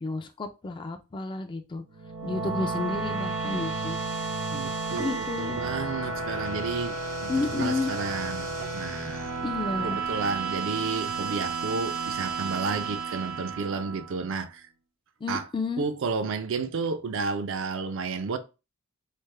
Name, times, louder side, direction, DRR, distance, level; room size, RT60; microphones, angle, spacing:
voice 1, 0.0-1.8 2.2-4.0 5.0-5.6 7.3-7.9 9.4-10.0 15.2-15.8, left 3 dB, 20° left, 0.3 m, -31 dB
sound 1, 1.9-14.3, right 4 dB, 85° right, 1.1 m, -32 dB
voice 2, 4.5-7.0 7.2-9.3 9.8-14.7 15.3-15.5 15.8-18.4, right 4 dB, 60° right, 0.4 m, -32 dB
3.3 x 2.1 x 3.2 m
head